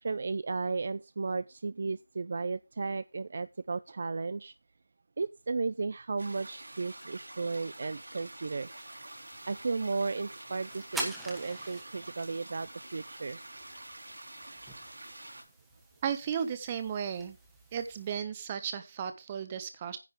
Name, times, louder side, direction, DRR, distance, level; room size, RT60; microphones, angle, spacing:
voice 1, 0.0-4.5 5.2-8.7 9.5-13.4, right 4 dB, 45° right, 0.5 m, -34 dB
sound 1, 6.2-15.4, right 1 dB, 75° right, 3.6 m, -47 dB
sound 2, 8.6-18.2, right 2 dB, 5° right, 1.3 m, -46 dB
voice 2, 16.0-17.4 17.7-20.0, right 8 dB, 20° right, 1.2 m, -34 dB
10.0 x 5.4 x 6.8 m
figure-of-eight pair, 165°, 0 cm